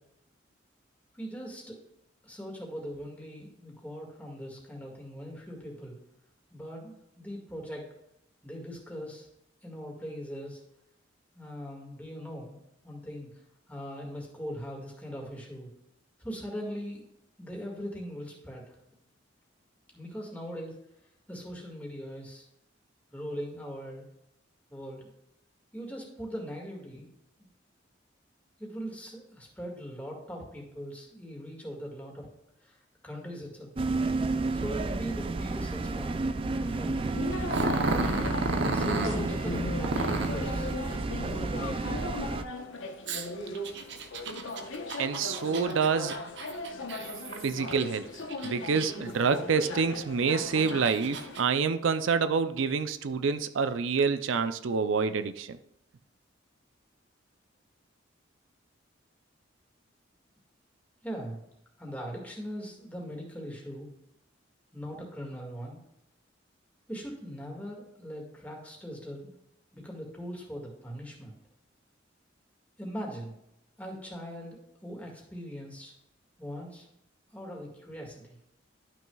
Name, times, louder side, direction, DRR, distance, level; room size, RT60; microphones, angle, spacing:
voice 1, 1.1-1.8 2.2-5.9 6.5-7.8 8.4-9.3 9.6-10.6 11.3-13.3 13.7-15.7 16.2-17.0 17.4-18.8 19.9-20.7 21.3-22.4 23.1-24.1 24.7-25.1 25.7-27.1 28.6-32.3 32.6-33.7 34.5-36.1 36.5-37.2 37.8-38.3 38.7-40.7 41.2-42.1 61.0-61.4 61.8-63.9 64.7-65.8 66.9-69.3 69.7-71.3 72.8-73.3 73.8-75.9 76.4-76.9 77.3-78.4, equal, 10° left, -1 dB, 1.9 m, -40 dB
sound 1, 33.8-42.4, right 3 dB, 30° right, 0.3 m, -31 dB
sound 2, 37.1-51.4, left 2 dB, 85° left, 1.0 m, -38 dB
Growling, 37.5-39.2 39.8-40.4 43.1-47.8 48.3-49.1 49.6-49.7 50.4-51.4, right 2 dB, 65° right, 0.8 m, -32 dB
voice 2, 45.0-46.2 47.4-48.1 48.4-55.6, right 5 dB, 85° right, 11 dB, 0.5 m, -27 dB
12.0 x 6.1 x 2.3 m, 0.81 s
head